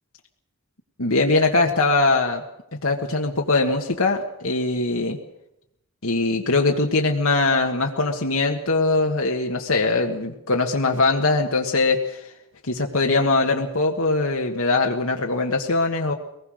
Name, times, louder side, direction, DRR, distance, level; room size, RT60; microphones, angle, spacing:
voice 1, 1.0-2.4 2.8-5.2 6.0-12.3 12.6-16.1, left 3 dB, 65° left, 1 dB, 1.6 m, -21 dB
24.0 x 19.5 x 6.4 m, 0.83 s
head